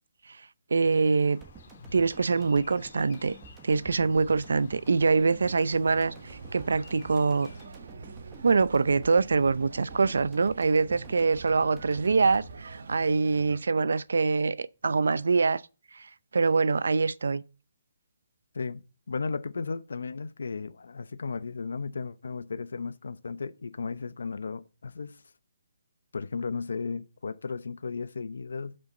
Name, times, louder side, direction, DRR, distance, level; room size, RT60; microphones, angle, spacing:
voice 1, 0.7-1.4 1.9-3.4 3.6-6.1 6.5-7.5 8.4-15.6 15.9-17.4, right 4 dB, 75° right, 0.6 m, -24 dB
sound 1, 0.8-7.7, left 4 dB, 40° left, 1.7 m, -50 dB
sound 2, 1.4-13.7 14.0-14.1, right 4 dB, 10° right, 1.2 m, -51 dB
sound 3, 5.0-13.6, right 4 dB, 55° right, 1.0 m, -45 dB
voice 2, 18.5-25.2 26.1-28.8, left 4 dB, 70° left, 0.8 m, -35 dB
12.0 x 5.6 x 3.9 m
hypercardioid pair, 175°, 0 cm